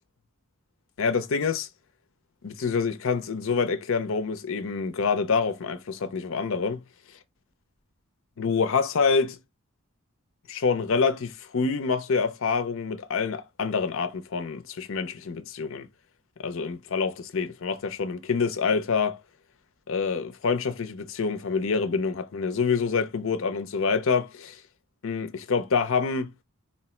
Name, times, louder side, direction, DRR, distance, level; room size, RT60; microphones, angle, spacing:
voice 1, 1.0-1.7 2.4-6.8 8.4-9.4 10.5-15.9 16.4-19.2 19.9-24.6 25.0-26.3, left 5 dB, 65° left, 0.5 m, -26 dB
4.3 x 2.0 x 4.2 m
head